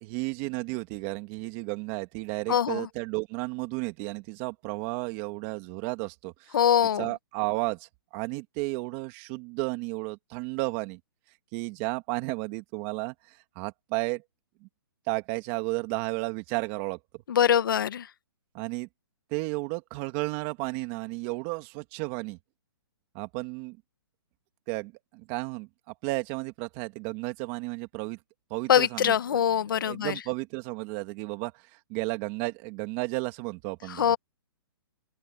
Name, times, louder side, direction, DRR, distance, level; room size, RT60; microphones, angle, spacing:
voice 1, 0.0-6.7 6.9-11.0 11.5-14.2 15.1-17.0 18.5-18.9 19.3-22.4 23.1-23.8 24.7-28.2 28.5-34.1, right 24 dB, 25° right, 2.5 m, -33 dB
voice 2, 2.5-2.9 6.5-7.1 17.3-18.0 28.7-30.1 34.0-34.2, left 9 dB, 60° left, 1.6 m, -23 dB
open air
hypercardioid pair, 160°, 13 cm